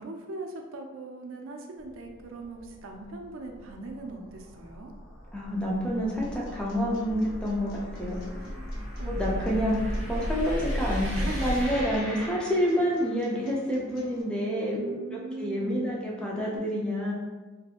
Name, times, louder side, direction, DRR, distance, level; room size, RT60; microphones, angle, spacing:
voice 1, 0.0-4.9 8.4-8.5 9.0-9.3 11.1-11.5 14.7-15.9, right 2 dB, 75° right, 2 dB, 0.4 m, -40 dB
sound 1, 1.8-13.2, equal, 35° left, 0.7 m, -35 dB
voice 2, 5.3-7.7 8.0-8.2 9.1-14.8 15.1-17.1, equal, 5° left, -4 dB, 0.4 m, -28 dB
sound 2, 6.2-14.2, left 1 dB, 75° left, 0.6 m, -48 dB
2.7 x 2.6 x 2.4 m, 1.2 s
head